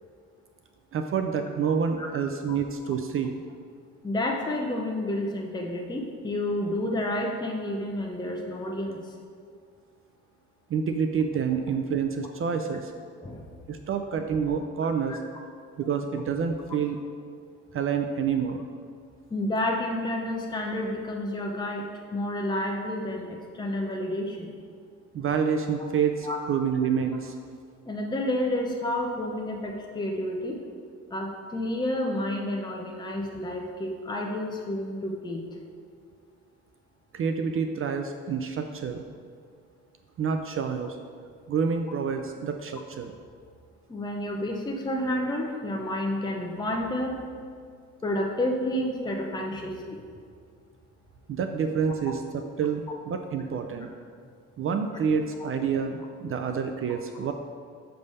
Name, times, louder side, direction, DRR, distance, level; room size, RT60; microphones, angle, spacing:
voice 1, 0.9-3.4 10.7-12.9 13.7-15.2 15.8-17.0 17.7-18.6 25.1-27.3 37.1-39.0 40.2-41.0 41.5-43.1 51.3-53.9 54.6-57.3, right 6 dB, 45° right, 6 dB, 0.4 m, -28 dB
voice 2, 4.0-9.1 13.2-13.5 15.1-15.2 19.3-24.5 26.2-26.4 27.9-30.6 31.1-35.4 43.9-47.2 48.0-50.0, left 1 dB, 15° left, 1 dB, 0.7 m, -30 dB
6.8 x 3.4 x 5.3 m, 2.1 s
cardioid pair, 90°, 30 cm